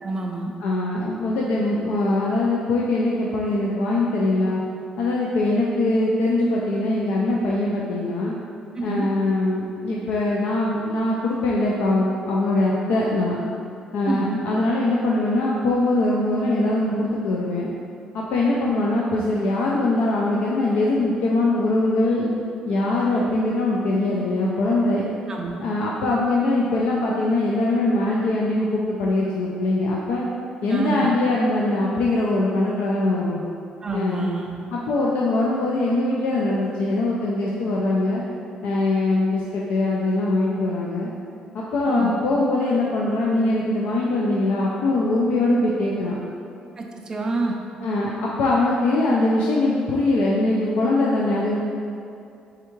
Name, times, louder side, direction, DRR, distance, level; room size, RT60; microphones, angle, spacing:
voice 1, 0.0-0.5 8.8-9.1 14.1-14.4 25.3-25.6 30.7-31.1 33.8-34.6 41.8-42.1 46.8-47.6, right 3 dB, 25° right, 1 dB, 0.3 m, -27 dB
voice 2, 0.6-4.6 5.0-8.4 8.8-13.4 13.9-17.7 18.1-22.3 22.7-25.0 25.6-30.2 30.6-33.4 33.9-34.3 34.7-38.2 38.6-41.1 41.5-46.2 47.8-51.7, left 2 dB, 80° left, -4 dB, 0.4 m, -22 dB
3.5 x 3.3 x 3.0 m, 2.6 s
cardioid pair, 140°, 3 cm